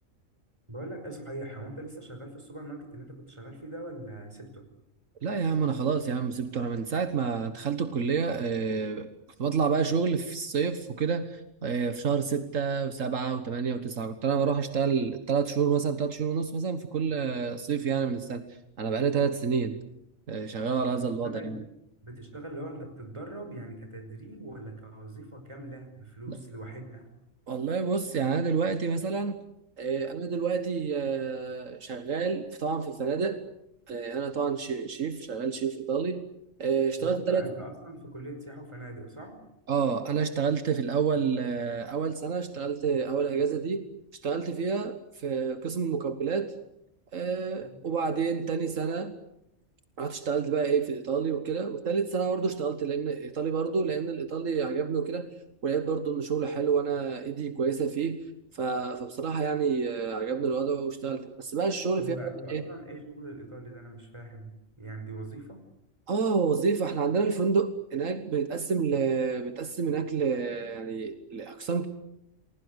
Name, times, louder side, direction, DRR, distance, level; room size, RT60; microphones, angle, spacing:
voice 1, 0.7-4.7 21.2-21.7 22.0-27.1 37.0-39.4 47.6-47.9 62.0-65.6, right 1 dB, 20° right, 5 dB, 5.5 m, -42 dB
voice 2, 5.2-9.1 9.4-18.4 18.8-19.8 20.3-21.6 26.3-26.4 27.5-29.4 29.8-33.4 33.9-36.3 36.6-37.6 39.7-43.9 44.1-46.5 47.1-49.1 50.0-55.3 55.6-58.2 58.5-62.6 66.1-71.9, right 5 dB, 75° right, 9 dB, 1.8 m, -29 dB
29.5 x 20.5 x 8.1 m, 0.83 s
omnidirectional pair, 1.4 m